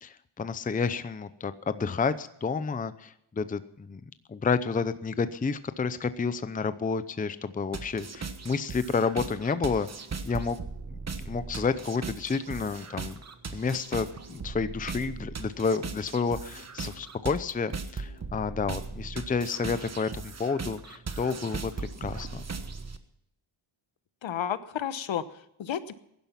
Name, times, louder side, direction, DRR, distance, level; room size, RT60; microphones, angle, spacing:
voice 1, 0.0-4.0 4.3-9.9 10.2-10.6 10.9-11.0 11.2-13.2 13.5-22.4, left 5 dB, 15° left, 13 dB, 0.6 m, -30 dB
sound 1, 7.7-23.0, right 4 dB, 30° right, 1.2 m, -38 dB
voice 2, 24.2-25.9, left 9 dB, 65° left, 13 dB, 1.1 m, -32 dB
16.5 x 11.0 x 5.8 m, 0.78 s
cardioid pair, 105°, 50 cm